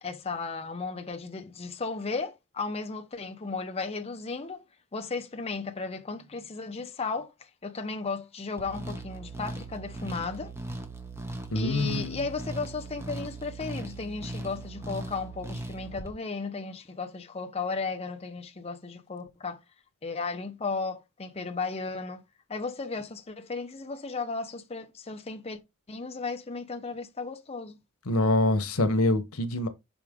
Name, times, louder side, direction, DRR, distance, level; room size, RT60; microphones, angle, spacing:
voice 1, 0.0-4.6 4.9-10.5 11.5-19.6 20.0-22.2 22.5-25.6 25.9-27.8, left 4 dB, 30° left, 0.7 m, -35 dB
sound 1, 8.6-16.1, right 2 dB, 10° right, 1.1 m, -39 dB
voice 2, 11.5-12.2 28.1-29.7, left 1 dB, 85° left, 1.1 m, -25 dB
5.9 x 5.0 x 3.7 m
head